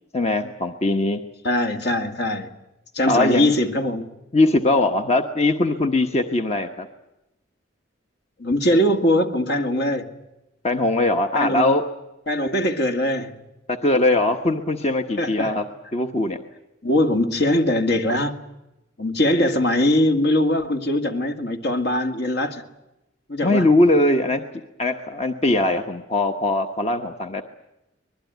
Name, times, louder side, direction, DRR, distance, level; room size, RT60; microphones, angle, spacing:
voice 1, 0.1-1.2 3.1-3.5 4.3-6.9 10.6-11.8 13.7-15.6 15.9-16.4 23.4-24.4 24.8-27.4, left 2 dB, 35° left, 1.1 m, -20 dB
voice 2, 1.4-2.5 2.9-4.1 8.4-10.1 11.3-11.7 12.3-13.4 15.2-15.5 16.8-18.4 19.0-22.6 23.3-23.7, left 1 dB, 60° left, 2.2 m, -21 dB
24.5 x 21.0 x 9.3 m
head